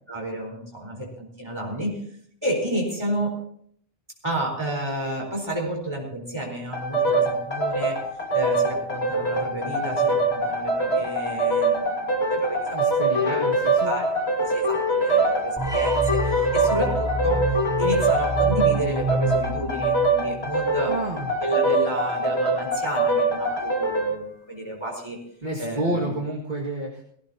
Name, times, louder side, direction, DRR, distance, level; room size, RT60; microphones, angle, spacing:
voice 1, 0.1-2.0 2.4-3.3 4.2-8.0 8.3-13.4 13.8-14.1 14.4-17.4 17.8-21.0 21.4-25.2 25.6-26.1, right 1 dB, 25° right, -1 dB, 4.4 m, -31 dB
sound 1, 6.7-24.1, right 2 dB, 85° left, 2.4 m, -23 dB
voice 2, 12.7-13.9 20.9-21.3 25.4-27.0, right 1 dB, 50° right, -3 dB, 2.1 m, -29 dB
sound 2, 15.6-20.7, right 2 dB, 5° right, 3.3 m, -28 dB
18.5 x 16.5 x 2.8 m, 0.64 s
omnidirectional pair, 1.0 m